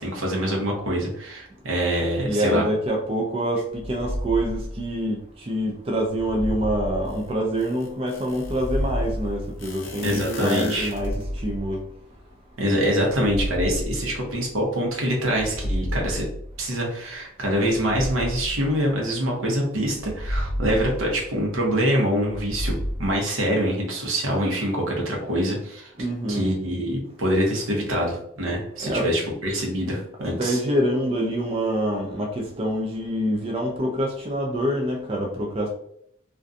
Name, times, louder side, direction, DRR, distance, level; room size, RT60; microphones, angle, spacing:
voice 1, 0.0-2.6 10.0-10.9 12.6-16.3 16.6-25.9 26.3-30.6, equal, 85° right, 0.8 m, -25 dB
voice 2, 2.2-11.8 26.0-26.4 28.8-29.1 30.2-35.7, equal, 30° right, 0.4 m, -26 dB
sound 1, 3.7-5.3 6.1-7.8 8.3-10.1 10.7-12.2 13.0-14.7 15.3-16.9 17.7-19.3 19.9-21.7 22.2-23.1, equal, 40° left, 0.5 m, -31 dB
sound 2, 7.1-7.2 7.6-8.7 9.6-11.4, left 3 dB, 80° left, 0.6 m, -37 dB
2.5 x 2.2 x 2.5 m
head